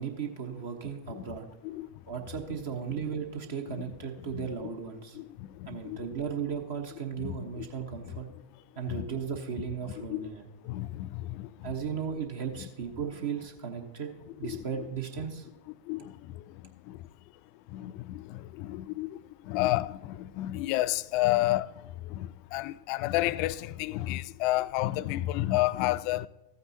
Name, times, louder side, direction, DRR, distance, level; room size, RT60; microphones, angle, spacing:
voice 1, 0.0-1.4 2.1-5.2 5.7-8.3 8.8-10.5 11.6-14.1 14.4-15.5, right 7 dB, 55° right, 1.1 m, -36 dB
voice 2, 4.2-4.7 5.1-6.1 7.2-7.6 8.9-9.1 10.1-10.3 10.6-11.7 12.6-12.7 14.4-14.6 15.8-17.1 17.7-26.3, left 16 dB, 45° left, 0.3 m, -31 dB
14.0 x 9.2 x 2.8 m
figure-of-eight pair, 90°, 0 cm